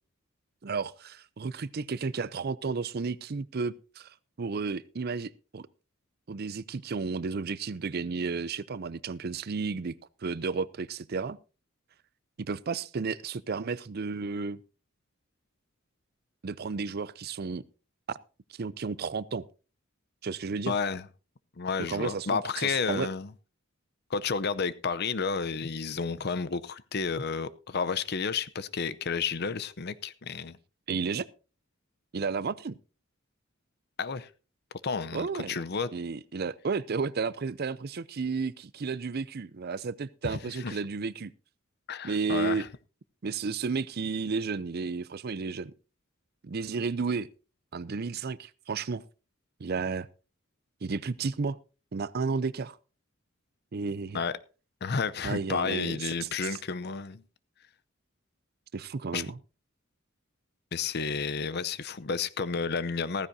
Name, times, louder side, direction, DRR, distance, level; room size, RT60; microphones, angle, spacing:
voice 1, 0.6-5.7 6.3-9.9 10.2-11.4 12.4-14.6 16.4-17.6 18.1-18.2 18.5-19.4 20.2-20.7 21.8-23.1 30.9-31.3 32.1-32.8 35.1-35.6 35.9-41.3 42.0-42.7 43.2-45.7 46.4-47.3 47.7-49.0 49.6-50.1 50.8-51.6 51.9-52.8 53.7-54.2 55.2-56.6 58.7-59.4, right 4 dB, 50° right, 0.5 m, -32 dB
voice 2, 20.7-21.1 21.6-23.3 24.1-30.6 34.0-34.3 34.8-35.9 40.3-40.8 41.9-42.7 54.1-54.4 54.8-57.2 59.1-59.3 60.7-63.3, left 5 dB, 55° left, 0.7 m, -31 dB
15.5 x 14.5 x 2.7 m
head